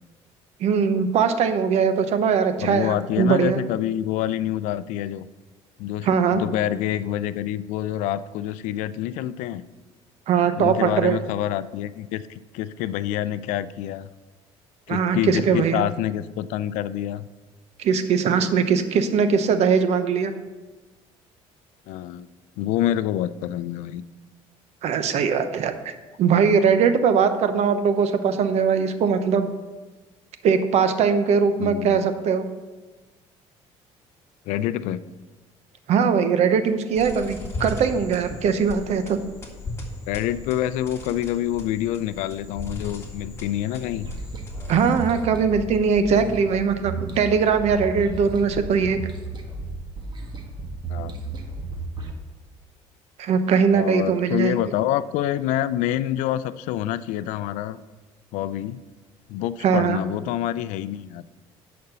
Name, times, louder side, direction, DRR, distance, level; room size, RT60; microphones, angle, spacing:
voice 1, 0.6-3.6 6.0-6.4 10.3-11.2 14.9-15.9 17.8-20.3 24.8-25.7 26.2-29.5 30.4-32.4 35.9-39.2 44.7-49.0 53.2-54.6 59.6-60.0, right 6 dB, 60° right, 9 dB, 0.9 m, -21 dB
voice 2, 2.6-5.3 5.8-9.6 10.6-14.1 14.9-17.3 21.9-22.3 22.6-24.0 31.6-32.0 34.5-35.0 40.1-44.1 50.9-51.1 53.7-57.8 58.3-58.8 59.3-61.2, left 12 dB, 80° left, 15 dB, 0.4 m, -27 dB
sound 1, 36.9-45.4, left 2 dB, 20° left, 2.1 m, -37 dB
sound 2, 44.0-52.1, right 3 dB, 40° right, 1.4 m, -34 dB
10.5 x 4.3 x 6.8 m, 1.3 s
cardioid pair, 95°, 12 cm